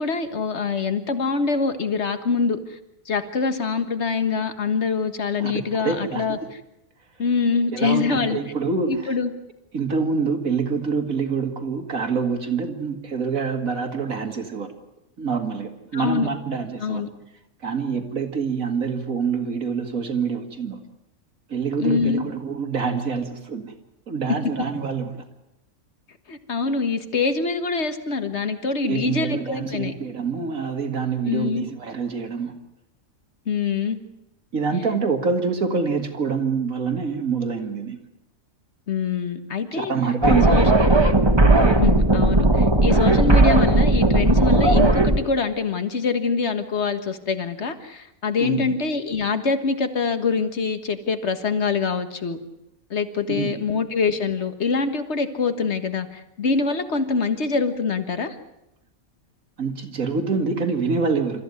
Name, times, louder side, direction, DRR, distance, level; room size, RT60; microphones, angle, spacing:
voice 1, 0.0-2.8 3.1-6.4 7.2-8.4 8.9-9.3 15.9-16.3 16.8-17.1 21.8-22.2 26.3-29.9 31.3-31.7 33.5-34.0 38.9-39.9 40.3-40.7 41.6-52.4 52.9-58.4, left 4 dB, 55° left, 9 dB, 1.8 m, -24 dB
voice 2, 5.8-6.3 7.7-9.2 9.7-14.7 15.2-17.0 17.6-20.8 21.5-23.7 24.1-25.3 28.8-32.6 34.5-38.0 39.7-40.7 48.4-48.6 53.3-53.7 59.6-61.4, right 5 dB, 85° right, 6 dB, 2.6 m, -26 dB
sound 1, 40.2-45.2, right 2 dB, 20° right, 1.4 m, -16 dB
28.0 x 14.0 x 9.7 m, 0.90 s
omnidirectional pair, 1.4 m